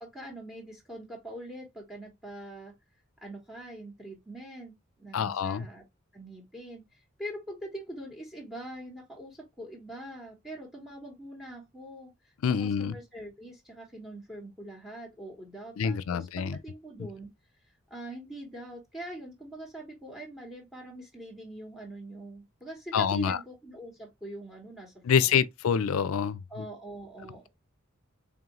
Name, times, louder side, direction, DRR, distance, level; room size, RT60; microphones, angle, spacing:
voice 1, 0.0-2.7 3.2-5.8 6.1-17.3 17.9-25.4 26.5-27.5, right 1 dB, ahead, 0.9 m, -43 dB
voice 2, 5.1-5.7 12.4-12.9 15.8-16.6 22.9-23.4 25.0-26.6, left 7 dB, 80° left, 0.4 m, -26 dB
3.8 x 3.5 x 2.9 m
head